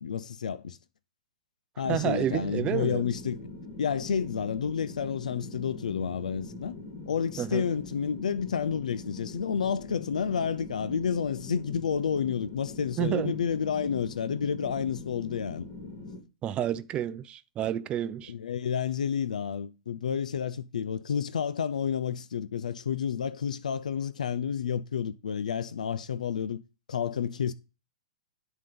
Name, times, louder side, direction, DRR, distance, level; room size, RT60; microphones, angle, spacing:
voice 1, 0.0-0.8 1.8-3.4 3.8-6.8 7.1-15.7 18.3-26.6 26.9-27.5, left 7 dB, 85° left, 0.5 m, -30 dB
sound 1, 1.8-16.2, left 2 dB, 40° left, 2.4 m, -43 dB
voice 2, 1.9-3.0 7.4-7.7 13.0-13.4 16.4-18.3, right 11 dB, 25° right, 0.5 m, -30 dB
9.8 x 3.9 x 5.3 m
hypercardioid pair, 125°, 4 cm